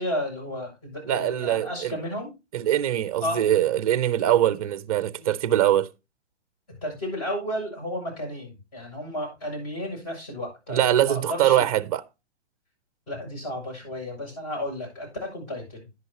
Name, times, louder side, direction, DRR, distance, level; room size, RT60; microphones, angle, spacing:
voice 1, 0.0-2.3 3.2-3.5 5.2-5.3 6.8-11.7 13.1-15.8, left 1 dB, 35° left, 7.1 m, -33 dB
voice 2, 1.1-2.0 2.5-5.9 10.7-12.0, right 12 dB, 30° right, 0.5 m, -22 dB
11.0 x 9.1 x 2.9 m
hypercardioid pair, 160°, 35 cm